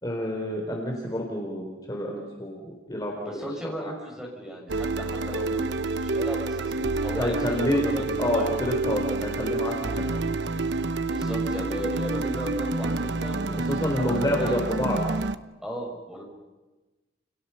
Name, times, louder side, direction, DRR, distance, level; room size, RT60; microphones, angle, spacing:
voice 1, 0.0-3.3 3.6-3.9 7.2-7.9 8.2-10.1 13.7-15.0, equal, 20° left, 0 dB, 4.1 m, -28 dB
voice 2, 3.3-8.5 11.0-14.9 15.6-16.2, equal, 5° right, 0 dB, 7.0 m, -35 dB
sound 1, 4.7-15.4, right 3 dB, 85° right, 1.0 m, -28 dB
30.0 x 29.5 x 5.8 m, 1.2 s
head